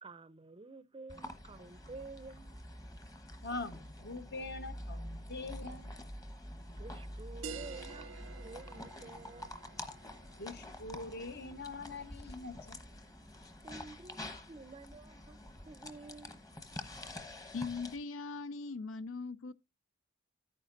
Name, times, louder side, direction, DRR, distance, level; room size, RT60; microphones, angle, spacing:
voice 1, 0.0-2.6 6.8-9.5 13.6-16.4, right 3 dB, 25° right, 0.5 m, -51 dB
sound 1, 1.1-18.0, left 1 dB, 20° left, 1.1 m, -47 dB
voice 2, 3.4-6.0 10.4-12.8, left 3 dB, 55° left, 1.1 m, -43 dB
sound 2, 7.4-12.5, right 6 dB, 80° right, 0.6 m, -50 dB
voice 3, 17.5-19.5, left 4 dB, 90° left, 0.5 m, -40 dB
11.0 x 9.2 x 2.6 m
head